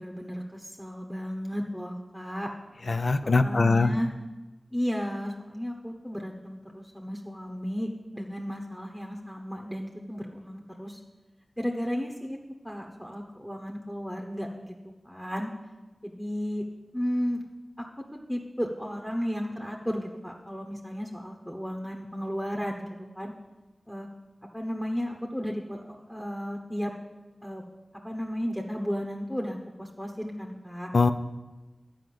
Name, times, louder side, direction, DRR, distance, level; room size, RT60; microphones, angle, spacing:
voice 1, 0.0-2.5 3.2-4.1 4.7-11.0 11.6-12.4 12.6-14.7 15.0-15.5 16.0-16.6 16.9-17.4 17.8-17.9 18.1-22.9 23.1-23.3 23.9-24.1 24.5-26.9 27.4-27.6 28.0-30.9, equal, 5° left, 1 dB, 1.1 m, -34 dB
voice 2, 2.9-3.9 30.9-31.1, left 3 dB, 70° left, 10 dB, 0.6 m, -22 dB
10.5 x 5.2 x 7.7 m, 1.1 s
wide cardioid pair, 55°, 0 cm